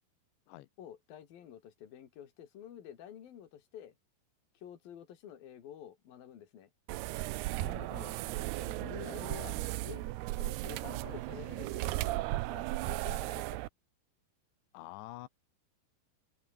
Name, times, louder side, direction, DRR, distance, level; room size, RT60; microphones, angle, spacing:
voice 1, 0.8-3.9 4.6-6.7 7.6-8.2 8.6-10.1 10.4-13.6, left 10 dB, 60° left, 4.2 m, -49 dB
sound 1, 6.9-13.7, right 19 dB, 80° right, 2.5 m, -36 dB
voice 2, 7.6-7.9 14.7-15.3, left 17 dB, 90° left, 3.3 m, -47 dB
omnidirectional pair, 5.0 m